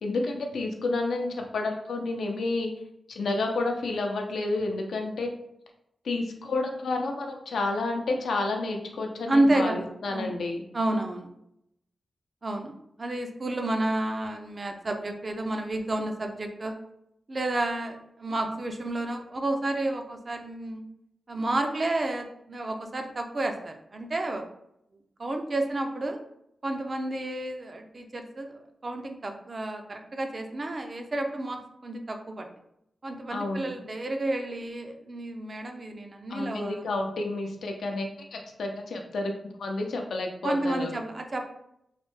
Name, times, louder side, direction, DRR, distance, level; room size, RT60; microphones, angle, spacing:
voice 1, 0.0-2.7 3.1-5.3 6.0-10.6 33.3-33.6 36.3-39.3 39.6-40.9, left 2 dB, 90° left, 3 dB, 0.5 m, -30 dB
voice 2, 9.3-10.3 10.7-11.3 12.4-16.7 17.3-20.8 21.3-24.4 25.2-26.2 26.6-32.5 33.0-36.9 40.4-41.4, right 1 dB, 35° right, 4 dB, 0.4 m, -30 dB
3.1 x 2.1 x 3.0 m, 0.79 s
wide cardioid pair, 145°, 0 cm